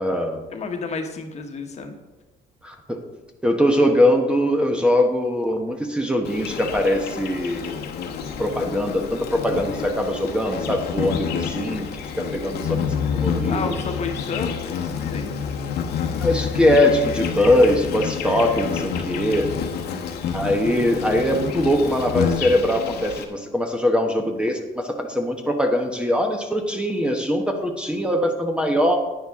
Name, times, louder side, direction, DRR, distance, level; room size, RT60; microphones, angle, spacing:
voice 1, 0.0-0.4 2.6-3.0 3.4-7.7 8.4-13.6 16.2-19.5 20.3-29.0, left 1 dB, 5° right, 3 dB, 1.0 m, -21 dB
voice 2, 0.5-2.0 13.5-15.3, left 4 dB, 40° left, 5 dB, 1.3 m, -31 dB
Insect, 6.2-23.2, left 7 dB, 75° left, 1.2 m, -28 dB
10.0 x 9.5 x 3.6 m, 1.1 s
cardioid pair, 110°, 17 cm